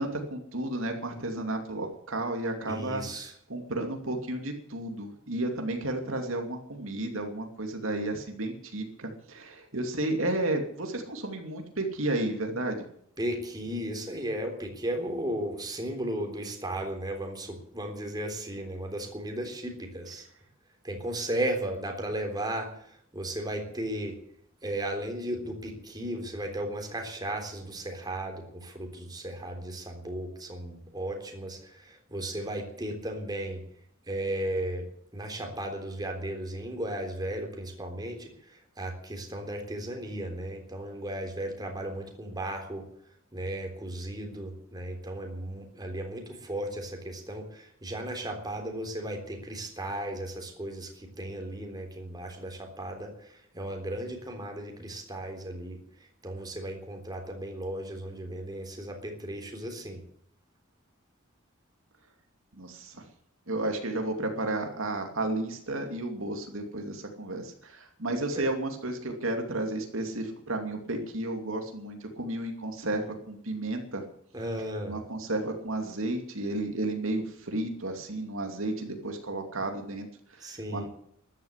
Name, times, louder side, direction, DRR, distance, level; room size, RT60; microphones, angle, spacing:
voice 1, 0.0-3.0 3.5-12.8 62.5-63.0 63.5-74.0 74.9-80.9, right 2 dB, 70° right, 4 dB, 2.7 m, -32 dB
voice 2, 2.7-3.3 13.2-20.3 20.8-24.2 24.6-33.6 34.1-34.9 35.1-42.9 43.3-55.8 56.2-60.0 68.3-68.5 74.3-75.0 80.4-80.9, right 1 dB, 20° right, 3 dB, 3.6 m, -35 dB
14.0 x 12.0 x 8.3 m, 0.67 s
head